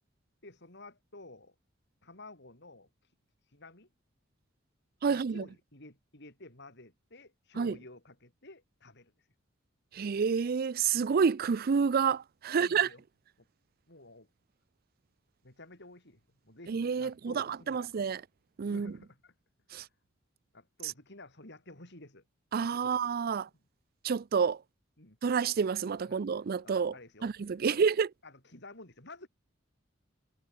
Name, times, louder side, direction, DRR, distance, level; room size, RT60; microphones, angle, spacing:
voice 1, 0.4-1.5 2.0-2.9 3.5-3.9 5.1-9.1 10.9-11.0 12.5-13.0 13.4-13.5 13.9-14.3 15.4-18.0 18.6-19.3 19.8-19.9 20.5-22.2 22.8-23.2 23.5-23.6 25.0-25.2 26.0-26.2 26.6-27.3 27.6-27.9 28.2-29.3, left 2 dB, 60° left, 7.9 m, -52 dB
voice 2, 5.0-5.4 7.6-7.7 9.9-12.9 16.7-18.2 18.6-18.9 19.7-19.8 22.5-23.5 24.0-24.6 25.2-26.9 27.2-28.1, right 6 dB, 50° right, 0.4 m, -29 dB
head